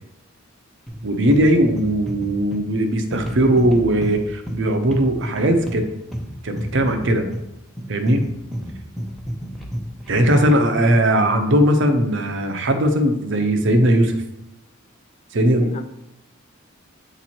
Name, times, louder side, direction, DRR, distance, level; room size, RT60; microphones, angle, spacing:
sound 1, 0.9-10.4, equal, ahead, 0.6 m, -31 dB
voice 1, 1.0-5.9 6.4-7.2 7.9-8.2 10.1-14.2 15.3-15.7, right 1 dB, 60° right, 0.7 m, -18 dB
voice 2, 10.3-10.9 15.6-15.8, left 4 dB, 35° left, 0.3 m, -35 dB
7.9 x 3.0 x 4.3 m
head